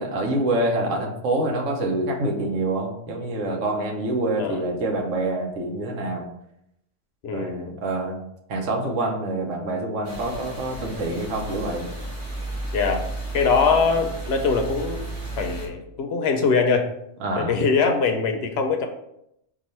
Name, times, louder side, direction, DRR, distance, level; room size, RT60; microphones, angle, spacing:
voice 1, 0.0-6.3 7.3-8.2 8.5-11.9 17.2-17.5, right 2 dB, 80° right, 1 dB, 1.2 m, -26 dB
voice 2, 7.2-7.6 12.7-13.1 13.3-15.0 15.4-16.9 17.4-18.9, left 5 dB, 65° left, 4 dB, 0.7 m, -22 dB
sound 1, 10.0-15.7, right 2 dB, 40° right, 1.9 m, -33 dB
4.7 x 2.4 x 4.1 m, 0.79 s
omnidirectional pair, 1.3 m